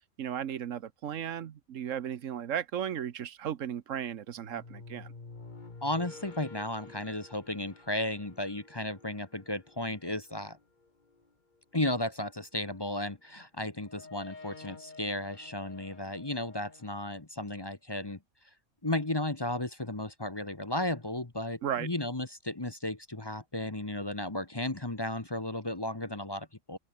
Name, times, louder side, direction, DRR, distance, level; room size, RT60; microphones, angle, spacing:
voice 1, 0.2-5.1 21.6-21.9, right 9 dB, 80° right, 1.3 m, -35 dB
sound 1, 3.9-12.0 13.0-17.0, left 3 dB, 35° left, 2.0 m, -51 dB
voice 2, 5.8-10.6 11.7-18.2 18.8-26.8, left 1 dB, 20° left, 1.2 m, -34 dB
open air
omnidirectional pair, 1.3 m